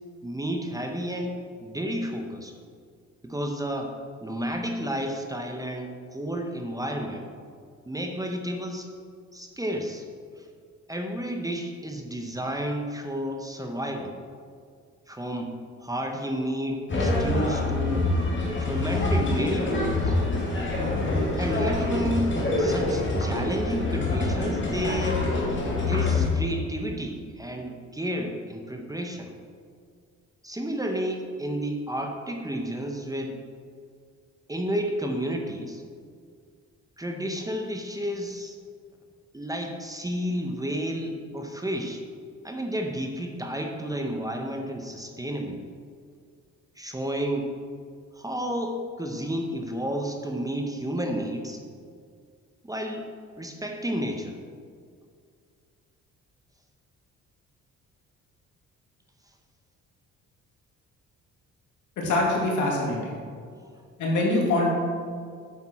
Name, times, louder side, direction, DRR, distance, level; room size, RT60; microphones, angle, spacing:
voice 1, 0.2-2.5 3.2-3.9 4.2-7.3 7.9-8.9 9.3-10.1 10.4-10.5 10.9-14.1 15.1-15.5 15.8-18.1 18.6-20.2 21.4-25.2 25.7-29.3 30.4-33.4 34.5-35.8 37.0-38.6 39.3-42.0 42.4-45.6 46.7-47.6 48.1-51.6 52.6-53.1 53.4-54.4, equal, 10° right, 3 dB, 0.9 m, -31 dB
sound 1, 16.9-26.3, left 2 dB, 40° left, 2.2 m, -25 dB
voice 2, 62.0-63.0 64.0-64.7, left 2 dB, 75° left, -2 dB, 2.4 m, -23 dB
8.2 x 6.8 x 4.4 m, 2.1 s
cardioid pair, 90°, 30 cm